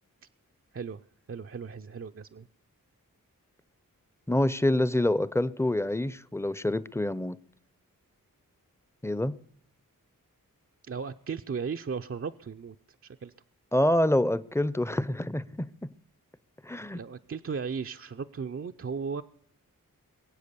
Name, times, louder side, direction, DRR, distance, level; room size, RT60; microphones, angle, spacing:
voice 1, 1.3-2.5 10.9-12.8 13.0-13.3 16.9-19.2, right 5 dB, 40° right, 0.5 m, -36 dB
voice 2, 4.3-7.4 9.0-9.3 13.7-15.9 16.6-17.0, left 1 dB, 10° left, 0.6 m, -26 dB
22.5 x 7.7 x 6.8 m
cardioid pair, 45°, 34 cm